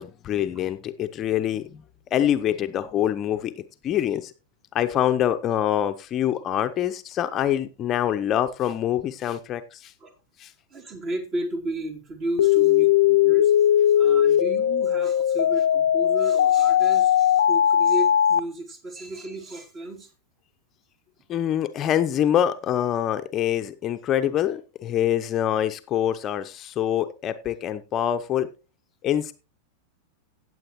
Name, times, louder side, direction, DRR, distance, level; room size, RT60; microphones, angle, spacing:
voice 1, 0.0-1.8 2.1-3.5 3.8-4.3 4.7-9.9 10.4-10.5 21.3-28.5 29.0-29.3, left 10 dB, 30° left, 9 dB, 0.7 m, -25 dB
voice 2, 10.7-13.5 13.9-20.1, right 1 dB, 35° right, 4 dB, 3.2 m, -33 dB
sound 1, 12.4-18.4, left 10 dB, 70° left, 0.6 m, -19 dB
16.5 x 7.8 x 3.1 m, 0.30 s
figure-of-eight pair, 95°, 0 cm